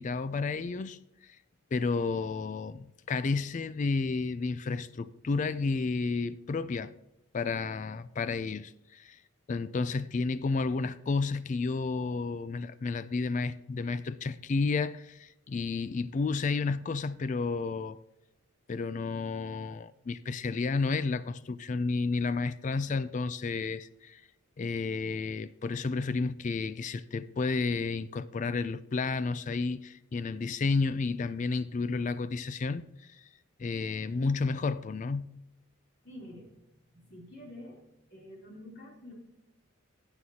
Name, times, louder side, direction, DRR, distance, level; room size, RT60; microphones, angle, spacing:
voice 1, 0.0-1.4 1.7-6.9 7.3-9.2 9.5-18.0 18.7-24.2 24.6-33.2 33.6-35.3, left 4 dB, 35° left, 0.3 m, -31 dB
voice 2, 36.0-37.8 38.1-39.1, left 1 dB, 50° left, 3.4 m, -48 dB
15.5 x 8.1 x 2.8 m
head